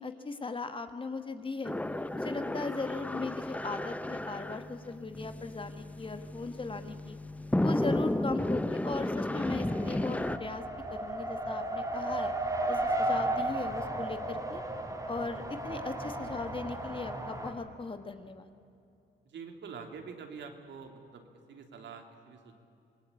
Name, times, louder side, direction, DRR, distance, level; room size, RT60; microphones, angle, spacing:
voice 1, 0.0-1.7 2.1-7.2 7.6-10.6 10.9-12.3 12.7-14.6 15.1-18.5, left 3 dB, 25° left, 8 dB, 1.7 m, -38 dB
sound 1, 1.6-10.4, left 1 dB, 5° left, 0.8 m, -33 dB
Race car auto racing, 9.3-17.5, right 1 dB, 15° right, 3.6 m, -34 dB
voice 2, 19.2-22.5, right 5 dB, 65° right, 5 dB, 3.2 m, -46 dB
27.0 x 19.0 x 8.6 m, 2.6 s
cardioid pair, 90°, 20 cm